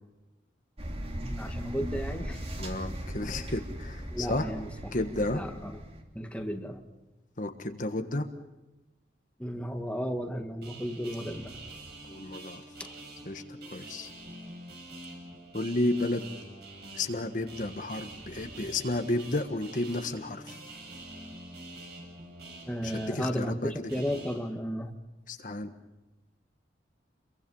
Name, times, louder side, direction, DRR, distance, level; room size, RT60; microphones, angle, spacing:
sound 1, 0.8-6.0, equal, 35° right, 3.2 m, -38 dB
voice 1, 1.2-2.5 4.1-4.7 5.3-5.7 6.1-6.9 9.4-11.6 12.8-12.9 22.6-24.9, equal, 5° left, 4 dB, 1.8 m, -34 dB
voice 2, 2.6-4.5 4.9-5.4 7.4-8.3 12.0-12.6 13.2-14.1 15.5-16.3 16.9-20.6 22.8-23.9 25.3-25.7, left 2 dB, 45° left, 6 dB, 1.5 m, -32 dB
sound 2, 10.6-24.3, right 2 dB, 60° right, 7.5 m, -46 dB
29.0 x 23.5 x 5.5 m, 1.0 s
head